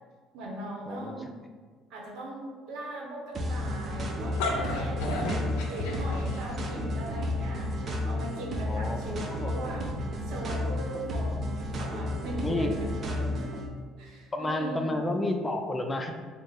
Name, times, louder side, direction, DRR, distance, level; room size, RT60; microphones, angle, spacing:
voice 1, 0.3-1.3 1.9-13.5 14.0-15.0, right 1 dB, 75° right, -1 dB, 0.8 m, -40 dB
voice 2, 0.9-1.2 8.7-9.5 12.4-12.7 14.3-16.1, left 2 dB, 20° left, 4 dB, 0.4 m, -31 dB
sound 1, 3.3-13.7, left 1 dB, 45° right, 0.5 m, -32 dB
sound 2, 4.1-6.7, left 2 dB, 85° left, 0.5 m, -32 dB
3.2 x 2.0 x 4.0 m, 1.5 s
cardioid pair, 100°, 0 cm